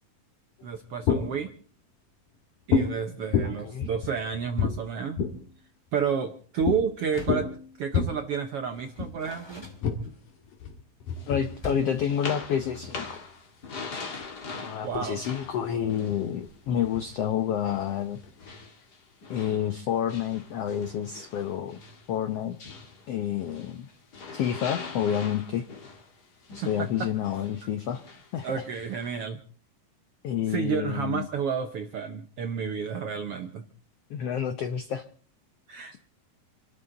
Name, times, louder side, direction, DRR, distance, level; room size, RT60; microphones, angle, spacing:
sound 1, 0.6-1.5 2.7-3.0 3.3-5.5 6.6-6.8 7.1-8.1 9.0-9.1 9.8-13.2 13.9-14.5 14.9-15.0 15.3-17.1 17.7-18.5, left 6 dB, 70° left, 3.3 m, -29 dB
voice 1, 0.6-1.5 2.7-5.2 5.9-7.5 7.8-9.7 14.8-15.2 26.6-27.1 28.4-29.4 30.5-33.6 35.7-36.0, right 6 dB, 70° right, 6 dB, 1.4 m, -30 dB
voice 2, 3.4-3.9 11.3-13.2 14.6-18.6 19.3-21.8 22.1-22.5 23.1-23.9 24.3-25.7 26.5-28.0 28.3-28.6 30.2-31.3 34.1-35.0, left 9 dB, 85° left, 9 dB, 1.3 m, -29 dB
Door, 7.0-7.6 8.7-10.4 11.6-12.1, equal, 10° left, 1.4 m, -42 dB
sound 2, 11.2-17.2 17.6-23.8 24.1-29.2, left 4 dB, 35° left, 1.9 m, -42 dB
27.5 x 12.5 x 3.9 m, 0.41 s
omnidirectional pair, 4.0 m